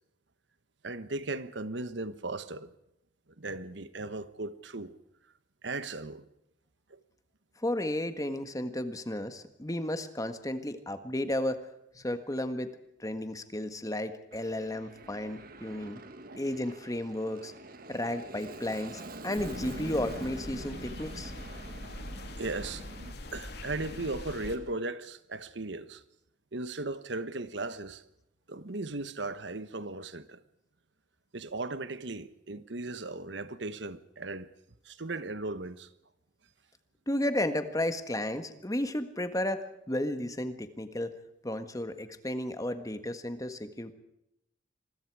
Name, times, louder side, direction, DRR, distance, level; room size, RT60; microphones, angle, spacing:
voice 1, 0.8-2.7 3.4-4.9 5.6-6.3 6.9-7.0 16.3-16.4 22.4-22.9 23.3-26.0 26.5-28.0 28.5-30.4 31.3-34.5 34.8-35.9, right 2 dB, 70° right, 1.3 m, -37 dB
voice 2, 7.6-11.6 12.0-12.7 13.0-16.0 16.4-17.5 17.9-21.3 37.1-41.1 41.4-43.9, left 1 dB, 20° left, 1.7 m, -33 dB
Aircraft, 14.3-23.1, right 2 dB, 50° right, 1.7 m, -45 dB
sound 1, 19.4-24.6, left 1 dB, 60° left, 2.9 m, -43 dB
27.5 x 22.0 x 4.9 m
head